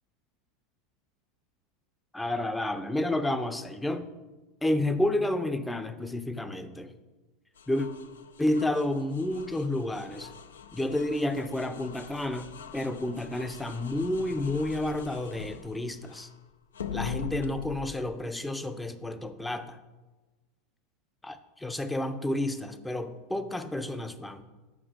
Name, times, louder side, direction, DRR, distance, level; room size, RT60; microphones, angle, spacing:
voice 1, 2.1-4.1 4.6-6.9 7.7-7.9 8.4-10.3 10.7-16.3 16.9-19.8 21.2-24.4, left 1 dB, 10° left, 10 dB, 0.6 m, -30 dB
sound 1, 7.6-16.3 16.7-17.8, left 7 dB, 75° left, 0.5 m, -42 dB
7.3 x 5.1 x 4.9 m, 1.2 s
figure-of-eight pair, 80°, 0 cm